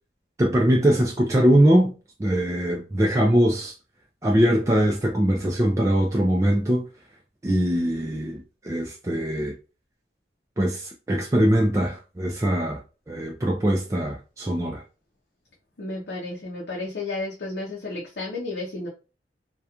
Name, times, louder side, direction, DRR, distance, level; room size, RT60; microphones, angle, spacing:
voice 1, 0.4-1.9 2.2-3.7 4.2-6.8 7.4-9.5 10.6-12.8 13.1-14.8, equal, 15° right, 0.3 m, -22 dB
voice 2, 15.8-18.9, left 2 dB, 65° left, 0.6 m, -32 dB
2.8 x 2.2 x 2.3 m
head